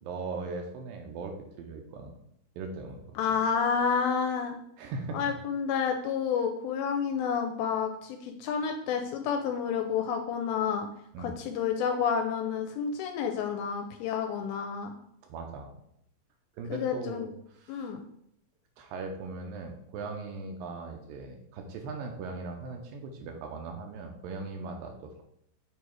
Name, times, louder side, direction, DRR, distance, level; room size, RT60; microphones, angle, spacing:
voice 1, 0.0-2.2 2.6-3.2 4.8-5.3 11.1-11.4 15.2-15.7 16.6-17.9 18.8-25.2, right 3 dB, 80° right, 3 dB, 2.3 m, -39 dB
voice 2, 3.2-4.6 5.1-10.9 11.2-14.9 16.7-17.3 17.7-18.0, left 6 dB, 85° left, 4 dB, 2.4 m, -29 dB
6.8 x 3.1 x 4.6 m, 0.73 s
omnidirectional pair, 4.3 m